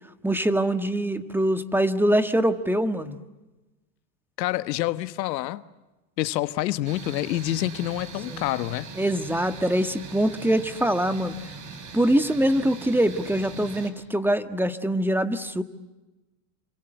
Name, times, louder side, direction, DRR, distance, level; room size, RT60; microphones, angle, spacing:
voice 1, 0.2-3.2 8.3-8.5 9.0-11.4 11.9-15.6, right 1 dB, 5° right, 1.6 m, -23 dB
voice 2, 4.4-5.6 6.2-8.9, left 15 dB, 85° left, 1.2 m, -27 dB
sound 1, 6.9-13.9, right 5 dB, 35° right, 5.1 m, -41 dB
28.5 x 25.5 x 8.0 m
supercardioid pair, 105°, 49 cm